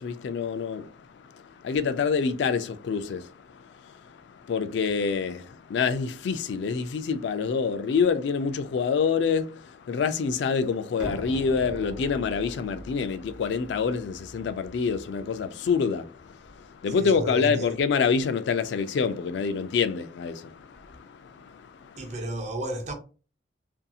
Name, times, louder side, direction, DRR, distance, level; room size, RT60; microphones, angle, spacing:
voice 1, 0.0-22.1, left 5 dB, 65° left, 0.3 m, -27 dB
sound 1, 11.0-16.6, equal, 5° right, 0.9 m, -42 dB
voice 2, 17.0-17.7 22.0-22.9, right 1 dB, 40° right, 0.6 m, -33 dB
2.7 x 2.6 x 2.3 m
head